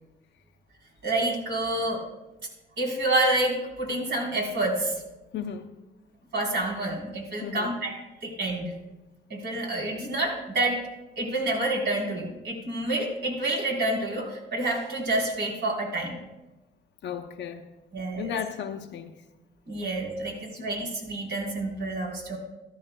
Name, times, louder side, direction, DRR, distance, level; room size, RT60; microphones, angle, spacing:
voice 1, 1.0-2.0 2.8-5.0 6.3-8.7 9.3-10.8 11.2-16.2 17.9-18.3 19.7-22.4, right 2 dB, 60° right, -1 dB, 3.9 m, -28 dB
voice 2, 5.3-5.7 7.4-7.7 17.0-17.7 18.2-19.2 20.6-20.7, left 8 dB, 65° left, 5 dB, 0.7 m, -34 dB
14.5 x 13.5 x 2.2 m, 1.0 s
cardioid pair, 90°, 20 cm